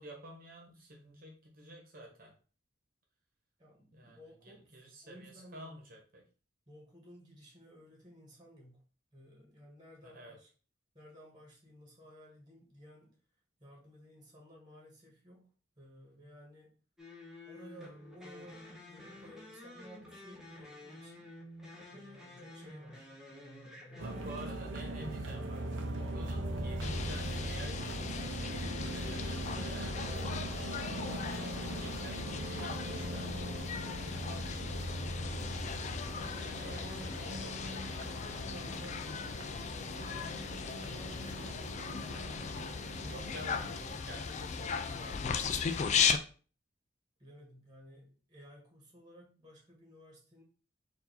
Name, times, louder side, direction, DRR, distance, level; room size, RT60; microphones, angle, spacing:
voice 1, 0.0-2.3 3.9-6.3 10.0-10.4 24.0-30.4 30.7-33.3 34.0-35.3 36.3-38.5 43.0-45.3, right 1 dB, 50° right, 0 dB, 1.2 m, -50 dB
voice 2, 3.6-5.7 6.7-8.8 9.1-10.5 10.9-13.1 13.6-15.5 15.8-16.7 17.4-21.3 21.9-24.8 36.4-37.3 38.3-41.3 47.2-50.4, equal, 20° right, -2 dB, 1.5 m, -56 dB
sound 1, 17.0-24.5, left 1 dB, 5° right, 0.9 m, -51 dB
sound 2, 24.0-43.8, right 1 dB, 90° right, 0.7 m, -40 dB
sound 3, 26.8-46.2, left 6 dB, 40° left, 0.4 m, -37 dB
4.6 x 2.7 x 4.0 m, 0.38 s
head